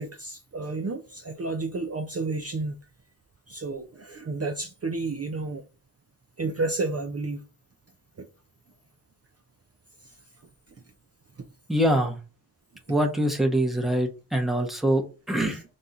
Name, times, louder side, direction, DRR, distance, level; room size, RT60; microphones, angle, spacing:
voice 1, 0.0-2.8 3.5-5.6 6.4-7.4 8.2-8.3, right 3 dB, 40° right, 0.5 m, -31 dB
voice 2, 11.7-12.2 12.9-15.6, right 1 dB, ahead, 0.8 m, -24 dB
4.2 x 2.3 x 3.8 m
wide cardioid pair, 65°, 39 cm